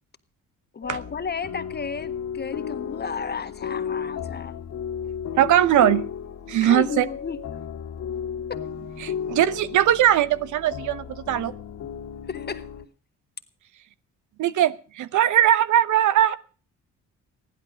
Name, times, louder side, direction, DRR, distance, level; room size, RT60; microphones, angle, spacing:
voice 1, 0.7-4.5 6.6-7.4 8.5-8.6 12.3-12.7, left 5 dB, 35° left, 1.5 m, -32 dB
sound 1, 0.8-12.8, left 8 dB, 60° left, 2.2 m, -34 dB
voice 2, 5.4-6.1 6.5-7.0 9.0-11.5 14.4-16.4, right 11 dB, 75° right, 1.0 m, -20 dB
15.0 x 11.5 x 6.4 m
cardioid pair, 90°, 30 cm